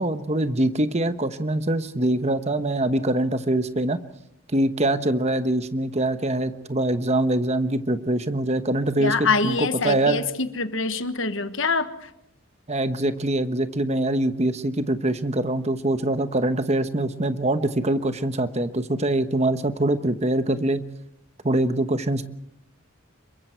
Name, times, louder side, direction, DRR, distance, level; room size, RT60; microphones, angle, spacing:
voice 1, 0.0-4.0 4.5-10.2 12.7-20.8 21.4-22.3, right 1 dB, 30° right, 10 dB, 1.1 m, -24 dB
voice 2, 9.0-11.9, left 4 dB, 60° left, 10 dB, 1.4 m, -24 dB
27.5 x 23.0 x 4.6 m, 0.77 s
head